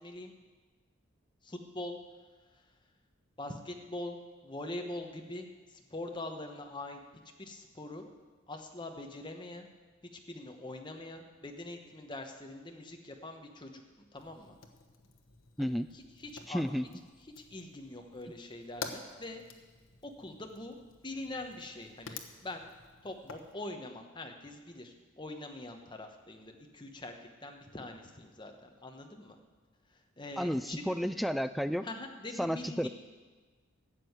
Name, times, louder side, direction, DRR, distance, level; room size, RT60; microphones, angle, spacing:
voice 1, 0.0-0.3 1.4-2.0 3.4-4.2 4.4-5.5 5.7-7.0 7.4-8.1 8.5-9.7 10.1-14.5 15.6-16.6 17.4-19.4 20.0-20.8 21.0-22.7 23.0-27.1 27.4-29.3 30.2-31.1 31.8-32.9, left 2 dB, 20° left, 3 dB, 1.2 m, -43 dB
Fire, 14.2-23.5, left 5 dB, 70° left, 1.1 m, -50 dB
voice 2, 16.5-16.8 30.4-31.9 32.4-32.9, equal, ahead, 11 dB, 0.3 m, -32 dB
12.5 x 7.8 x 8.1 m, 1.4 s
head